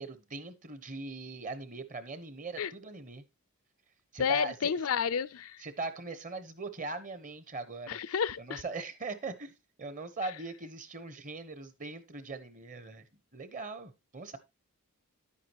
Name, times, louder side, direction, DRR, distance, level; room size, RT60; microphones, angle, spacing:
voice 1, 0.0-3.2 4.1-4.7 5.6-8.0 8.4-9.5 9.8-13.0 13.3-14.4, right 3 dB, 35° right, 1.0 m, -40 dB
voice 2, 4.2-5.6 7.9-8.6, left 7 dB, 70° left, 0.5 m, -30 dB
10.5 x 8.5 x 2.9 m
head